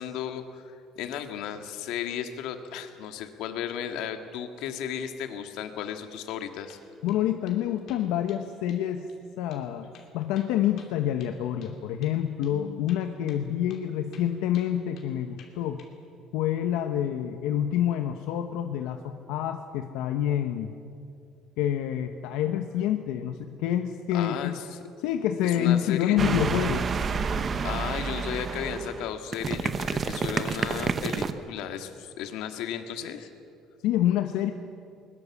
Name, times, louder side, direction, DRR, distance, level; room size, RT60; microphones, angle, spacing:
voice 1, 0.0-6.8 24.1-24.8 25.4-26.2 27.6-33.3, left 9 dB, 70° left, 7 dB, 1.8 m, -35 dB
sound 1, 6.3-6.4 6.7-7.2 7.5-7.6 7.9-8.4 8.7-8.8 9.1-9.2 9.5-9.7 9.9-11.8 12.0-12.2 12.4-12.5 12.9-13.9 14.1-15.1 15.4-15.9, left 7 dB, 45° left, 2.8 m, -54 dB
voice 2, 7.0-9.1 9.4-15.8 16.3-20.7 21.6-24.6 25.0-26.9 33.8-34.5, left 11 dB, 90° left, 6 dB, 1.1 m, -27 dB
sound 2, 26.2-31.3, right 5 dB, 25° right, 0.9 m, -29 dB
21.5 x 21.0 x 7.3 m, 2.5 s
cardioid pair, 175°, 0 cm